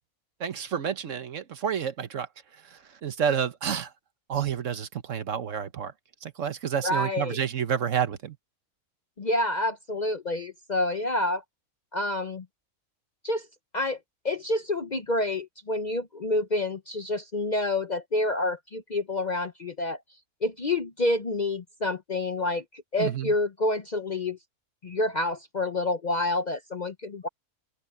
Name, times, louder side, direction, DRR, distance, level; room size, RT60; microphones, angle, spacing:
voice 1, 0.4-2.3 3.0-3.9 4.3-5.9 6.2-8.3 23.0-23.3, right 8 dB, 60° right, 1.3 m, -29 dB
voice 2, 6.8-7.4 9.2-11.4 11.9-12.5 13.2-13.5 13.7-14.0 14.2-20.0 20.4-22.6 22.9-24.4 24.8-27.3, left 2 dB, 40° left, 0.7 m, -28 dB
open air
omnidirectional pair, 1.5 m